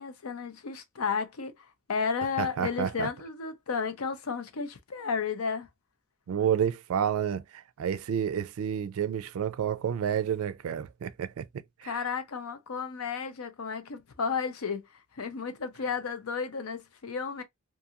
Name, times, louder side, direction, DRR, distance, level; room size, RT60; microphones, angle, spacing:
voice 1, 0.0-1.5 1.9-5.7 11.8-14.8 15.1-17.4, left 5 dB, 90° left, 0.6 m, -33 dB
voice 2, 2.4-3.1 6.3-11.5 11.8-12.0, right 8 dB, 75° right, 0.3 m, -30 dB
2.8 x 2.6 x 2.4 m
head